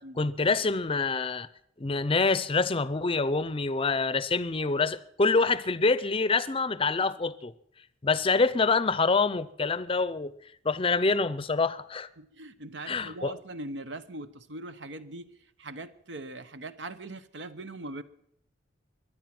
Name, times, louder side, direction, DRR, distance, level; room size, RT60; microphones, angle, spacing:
voice 1, 0.2-1.5 1.8-7.5 8.0-10.3 10.6-12.1 12.9-13.3, left 4 dB, 30° left, 0.6 m, -26 dB
voice 2, 12.2-15.3 15.6-18.0, right 2 dB, 70° right, 0.9 m, -41 dB
23.0 x 9.9 x 6.0 m
head